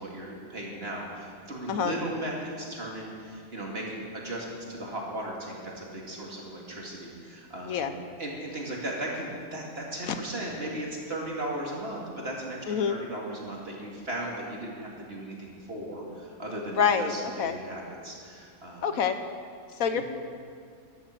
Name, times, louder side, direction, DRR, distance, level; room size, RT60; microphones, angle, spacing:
voice 1, 0.0-18.9 19.9-20.0, right 1 dB, 45° right, -2 dB, 2.7 m, -37 dB
voice 2, 12.7-13.0 16.8-17.1 17.4-17.6 18.8-19.2 19.8-20.0, left 7 dB, 75° left, 9 dB, 1.3 m, -26 dB
13.5 x 10.5 x 7.8 m, 2.3 s
omnidirectional pair, 1.5 m